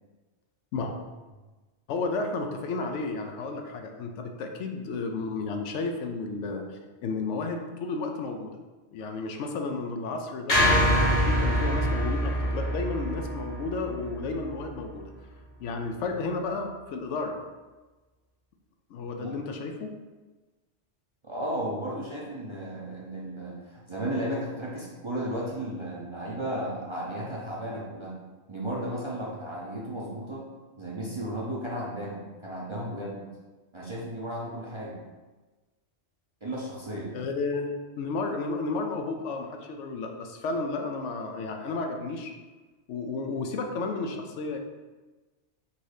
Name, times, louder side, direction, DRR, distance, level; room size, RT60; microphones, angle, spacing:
voice 1, 1.9-8.6 8.9-15.1 15.6-17.4 18.9-19.9 37.1-42.3 42.9-44.6, left 3 dB, 75° left, 4 dB, 0.9 m, -32 dB
sound 1, 10.5-14.8, equal, 55° left, 1.2 m, -25 dB
voice 2, 21.2-28.1 28.5-30.5 30.8-33.2 33.7-35.0 36.4-37.1, right 1 dB, 30° right, -5 dB, 0.6 m, -34 dB
4.1 x 2.7 x 4.8 m, 1.3 s
omnidirectional pair, 1.2 m